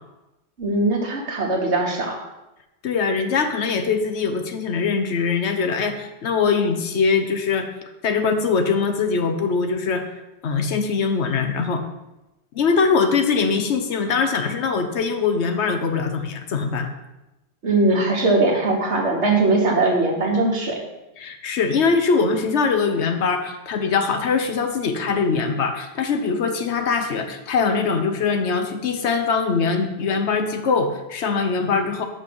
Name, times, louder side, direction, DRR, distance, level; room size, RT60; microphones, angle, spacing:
voice 1, 0.6-2.2 17.6-20.8, right 2 dB, 65° right, 0 dB, 1.6 m, -20 dB
voice 2, 2.8-7.7 8.0-10.0 10.4-11.8 12.5-16.9 21.2-32.1, left 5 dB, 65° left, 6 dB, 1.0 m, -22 dB
5.5 x 5.4 x 6.0 m, 0.97 s
omnidirectional pair, 1.2 m